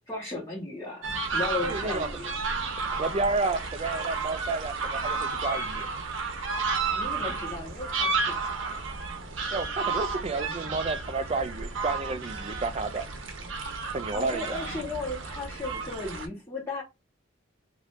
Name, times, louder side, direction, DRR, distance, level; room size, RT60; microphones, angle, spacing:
voice 1, 0.1-2.3 6.9-8.8 14.1-16.8, left 2 dB, 15° left, 1.0 m, -36 dB
sound 1, 1.0-16.3, right 4 dB, 65° right, 0.8 m, -32 dB
voice 2, 1.6-2.1 3.0-5.9 9.5-13.0 13.9-14.6, right 3 dB, 30° right, 0.4 m, -31 dB
2.6 x 2.5 x 3.4 m
head